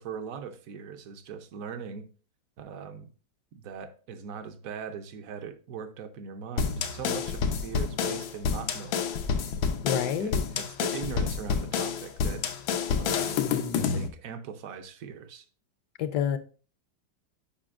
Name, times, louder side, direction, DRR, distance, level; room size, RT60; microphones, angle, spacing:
voice 1, 0.0-2.0 2.6-3.1 3.5-9.1 10.2-12.5 12.9-13.4 13.7-15.5, right 6 dB, 65° right, 0.8 m, -40 dB
sound 1, 6.6-14.1, left 6 dB, 90° left, 1.5 m, -28 dB
voice 2, 9.8-10.4 16.0-16.4, left 8 dB, 70° left, 1.1 m, -28 dB
8.5 x 5.3 x 2.4 m
omnidirectional pair, 2.1 m